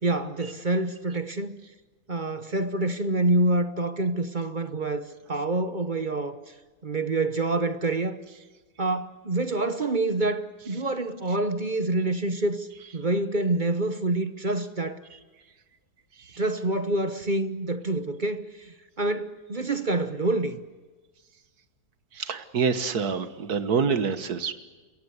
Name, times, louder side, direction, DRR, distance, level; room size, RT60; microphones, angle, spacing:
voice 1, 0.0-1.6 2.1-6.5 6.8-8.2 8.8-12.7 12.9-15.0 16.4-20.6, right 2 dB, 35° right, 1.0 m, -27 dB
voice 2, 22.1-24.5, right 6 dB, 60° right, 1.9 m, -26 dB
29.5 x 17.0 x 8.2 m
omnidirectional pair, 1.9 m